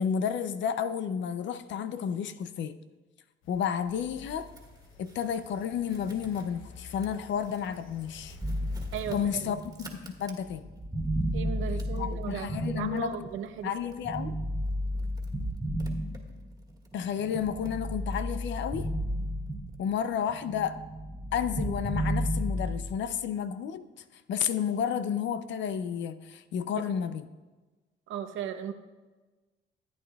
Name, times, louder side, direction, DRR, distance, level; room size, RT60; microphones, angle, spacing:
voice 1, 0.0-2.8 3.5-4.5 5.0-8.4 9.1-10.7 11.9-13.2 13.6-14.4 16.9-18.9 19.8-20.8 21.3-27.3, left 8 dB, 70° left, 12 dB, 0.5 m, -31 dB
sound 1, 3.4-9.6, left 4 dB, 90° left, 0.9 m, -51 dB
sound 2, 3.9-10.8 11.2-19.7, right 2 dB, 20° right, 1.6 m, -53 dB
sound 3, 8.4-13.5 14.0-16.7 17.2-20.0 20.3-23.0, equal, ahead, 1.8 m, -33 dB
voice 2, 8.9-9.6 11.3-13.7 26.7-26.9 28.1-28.7, right 8 dB, 80° right, 9 dB, 0.7 m, -36 dB
14.5 x 8.7 x 2.3 m, 1.2 s
cardioid pair, 90°, 20 cm